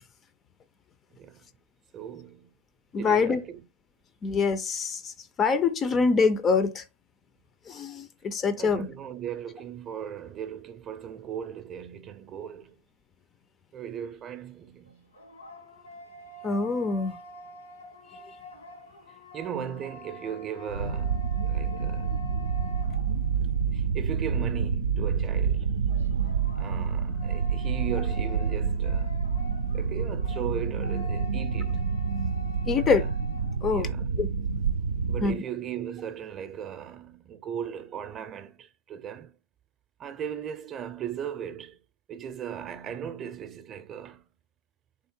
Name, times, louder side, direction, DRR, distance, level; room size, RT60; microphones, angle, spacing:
voice 1, 1.1-1.5 1.9-2.5 3.0-3.6 8.6-12.8 13.7-15.1 19.3-22.2 23.7-25.9 26.6-29.2 29.7-31.9 32.7-33.0 33.7-34.1 35.1-39.3 40.0-41.8 42.1-44.2, right 9 dB, 30° right, 0.5 m, -37 dB
voice 2, 2.9-3.4 4.2-6.8 7.7-8.9 16.4-17.2 32.7-33.0 33.6-33.9 34.2-34.3 35.2-35.4, left 5 dB, 25° left, 0.4 m, -25 dB
sound 1, 14.9-23.6 25.9-33.6, left 3 dB, 85° left, 1.4 m, -47 dB
sound 2, 20.7-35.3, right 6 dB, 85° right, 0.4 m, -28 dB
3.5 x 3.4 x 4.4 m
hypercardioid pair, 105°, 0 cm